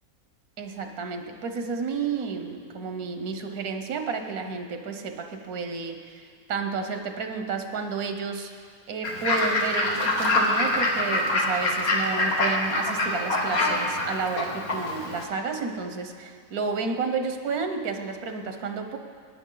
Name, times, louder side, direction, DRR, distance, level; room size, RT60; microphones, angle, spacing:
voice 1, 0.6-6.2 6.5-8.5 8.9-19.0, right 5 dB, 85° right, 6 dB, 1.4 m, -31 dB
Fowl / Bird, 9.0-15.2, left 2 dB, 80° left, 2.0 m, -25 dB
18.0 x 9.8 x 3.9 m, 2.1 s
omnidirectional pair, 1.5 m